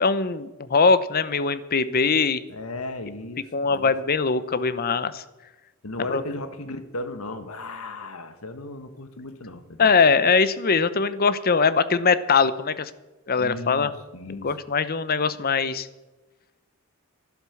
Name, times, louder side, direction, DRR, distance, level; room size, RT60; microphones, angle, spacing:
voice 1, 0.0-2.4 3.5-5.2 6.1-6.2 9.8-12.9 13.3-13.9 14.4-15.9, left 5 dB, 45° left, 15 dB, 0.8 m, -21 dB
voice 2, 2.5-3.9 5.8-9.9 13.4-14.5, left 2 dB, 80° left, 9 dB, 1.4 m, -36 dB
11.5 x 11.5 x 7.0 m, 1.1 s
head